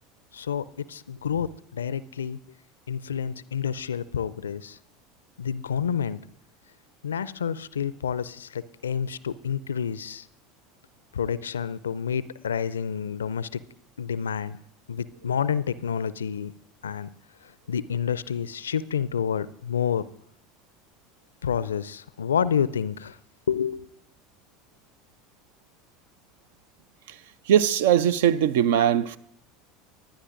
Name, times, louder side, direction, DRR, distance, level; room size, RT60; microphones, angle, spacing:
voice 1, 0.3-2.4 2.9-4.8 5.4-6.2 7.0-10.3 11.1-13.6 14.0-14.6 14.9-16.5 16.8-17.1 17.7-20.1 21.4-23.2 23.5-23.9, left 7 dB, 75° left, 0.4 m, -29 dB
voice 2, 27.5-29.2, right 10 dB, 65° right, 0.4 m, -20 dB
22.5 x 10.0 x 2.5 m
figure-of-eight pair, 75°, 0 cm